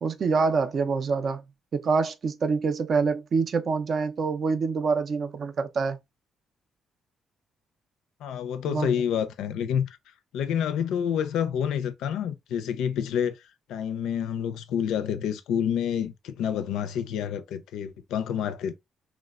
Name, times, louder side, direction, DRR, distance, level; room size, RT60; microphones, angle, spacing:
voice 1, 0.0-1.4 1.7-6.0 8.7-8.9, right 4 dB, 50° right, 0.4 m, -26 dB
voice 2, 8.2-10.0 10.3-13.4 13.7-18.7, left 8 dB, 85° left, 0.4 m, -28 dB
3.1 x 2.1 x 2.2 m
cardioid pair, 90°, 0 cm